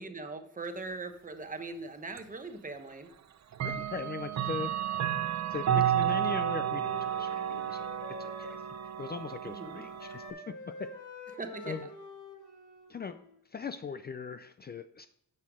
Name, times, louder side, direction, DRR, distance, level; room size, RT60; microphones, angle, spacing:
voice 1, 0.0-3.1 9.4-9.8 11.3-11.8, right 3 dB, 25° right, 7 dB, 1.0 m, -40 dB
Clock, 2.2-2.3 3.5-10.3, right 10 dB, 60° right, 0.7 m, -32 dB
voice 2, 3.6-7.9 8.2-8.6 9.0-10.4 10.8-10.9 11.6-11.9 12.9-13.1 13.5-15.1, left 5 dB, 35° left, 10 dB, 0.4 m, -40 dB
Wind instrument woodwind instrument, 6.0-9.3 9.5-13.5, left 2 dB, 80° left, 3.6 m, -47 dB
10.0 x 6.5 x 3.6 m, 0.76 s
wide cardioid pair, 145°, 30 cm